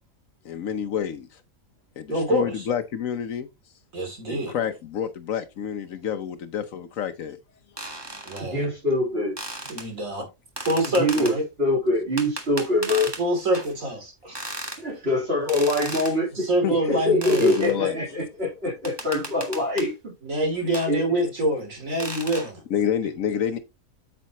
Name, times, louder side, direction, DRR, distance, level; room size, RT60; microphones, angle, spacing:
voice 1, 0.4-1.4 2.0-3.5 4.3-7.4 15.9-16.1 16.6-17.0 17.4-18.0 22.7-23.6, left 8 dB, 75° left, 1.2 m, -28 dB
voice 2, 2.1-2.7 3.9-4.5 8.2-8.7 9.7-10.2 10.6-11.4 13.2-14.3 16.3-17.7 20.2-22.6, right 1 dB, 70° right, 3.4 m, -26 dB
sound 1, 7.8-8.4 9.4-9.9 10.6-11.4 12.2-13.2 13.5-13.7 14.3-14.8 15.5-16.2 17.2-17.7 18.8-19.9 20.7-20.9 22.0-22.5, right 1 dB, 20° right, 1.5 m, -35 dB
voice 3, 8.4-9.3 11.0-11.3 11.6-13.1 14.8-16.5 16.9-19.9 20.9-21.0, left 1 dB, 45° right, 3.7 m, -24 dB
8.8 x 7.3 x 3.0 m
omnidirectional pair, 1.4 m